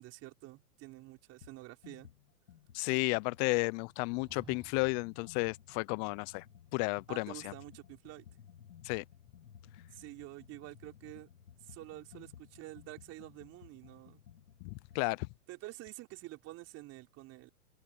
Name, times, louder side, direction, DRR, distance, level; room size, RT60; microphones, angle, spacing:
voice 1, 0.0-2.1 7.1-8.3 9.9-11.3 11.6-14.2 15.5-17.5, right 18 dB, 35° right, 3.8 m, -48 dB
sound 1, 1.4-1.6 1.8-15.1, left 9 dB, 75° left, 2.6 m, -57 dB
voice 2, 2.7-6.4 6.7-7.5 8.8-9.0 14.6-15.3, left 31 dB, 30° left, 0.6 m, -33 dB
sound 2, 3.9-5.2, right 4 dB, 10° right, 6.8 m, -56 dB
open air
hypercardioid pair, 125°, 45 cm